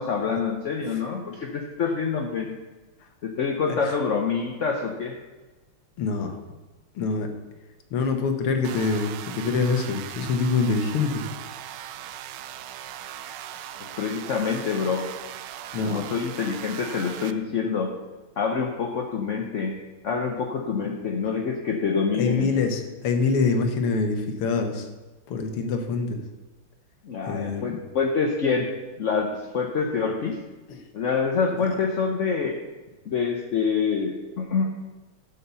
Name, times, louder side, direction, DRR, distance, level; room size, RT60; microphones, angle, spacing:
voice 1, 0.0-2.5 3.2-5.1 13.8-15.1 15.9-17.9 18.4-19.7 20.0-22.5 27.0-28.7 29.0-30.4 30.9-32.6 33.1-34.6, left 5 dB, 55° left, 2 dB, 0.8 m, -26 dB
voice 2, 6.0-6.4 7.0-7.3 7.9-11.2 15.7-16.1 22.1-24.9 25.3-26.2 27.3-27.8 30.7-30.8 31.5-31.7, left 4 dB, 90° left, 6 dB, 2.1 m, -25 dB
sound 1, 8.6-17.3, right 11 dB, 75° right, 1.0 m, -39 dB
11.5 x 5.6 x 6.9 m, 1.2 s
omnidirectional pair, 2.4 m